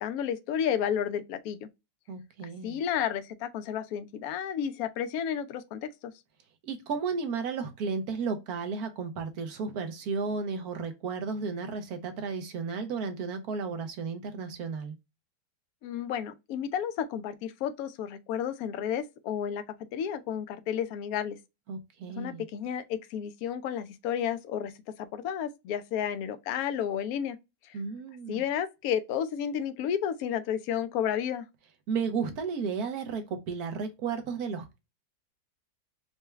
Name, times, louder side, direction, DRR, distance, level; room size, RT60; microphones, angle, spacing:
voice 1, 0.0-1.7 2.6-6.1 15.8-21.4 22.2-24.7 25.0-27.4 27.6-27.8 28.3-31.4, left 9 dB, 70° left, 0.9 m, -32 dB
voice 2, 2.1-2.8 6.6-14.9 21.7-22.4 27.7-28.4 31.9-34.8, right 5 dB, 65° right, 1.3 m, -33 dB
4.6 x 2.2 x 3.1 m
omnidirectional pair, 1.8 m